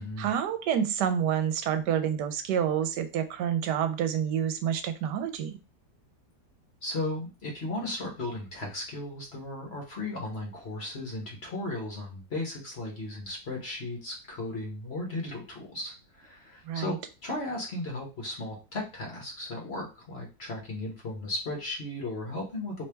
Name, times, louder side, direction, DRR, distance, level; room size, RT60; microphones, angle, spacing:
voice 1, 0.2-5.6 16.7-17.0, right 9 dB, 85° right, 8 dB, 1.2 m, -28 dB
voice 2, 6.8-17.0 17.2-22.8, left 2 dB, 45° left, -1 dB, 1.0 m, -36 dB
3.1 x 3.0 x 3.3 m, 0.31 s
omnidirectional pair, 1.8 m